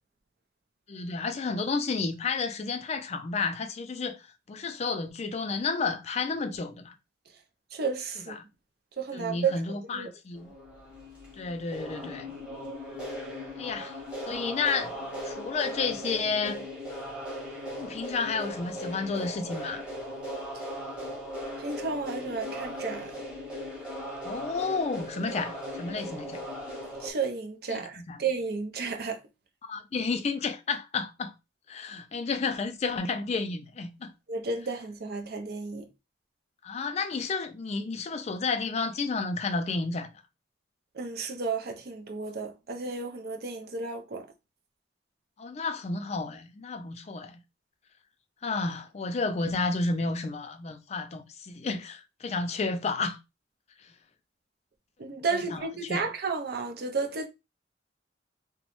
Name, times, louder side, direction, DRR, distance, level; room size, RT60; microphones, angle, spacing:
voice 1, 0.9-7.0 8.3-8.4 9.1-10.5 11.4-12.3 13.6-14.0 14.3-15.0 15.2-16.6 17.8-19.8 24.2-26.4 27.7-28.2 29.6-31.3 31.7-34.1 36.6-40.1 45.4-47.4 48.4-53.2 53.8-53.9 55.3-56.0, left 4 dB, 35° left, 0.4 m, -31 dB
voice 2, 7.7-8.3 9.0-9.6 9.9-10.1 21.6-23.1 27.0-29.2 34.3-35.9 40.9-44.3 55.0-57.3, right 4 dB, 60° right, 0.5 m, -32 dB
sound 1, 10.3-27.1, equal, 5° right, 0.8 m, -38 dB
2.9 x 2.0 x 2.9 m
head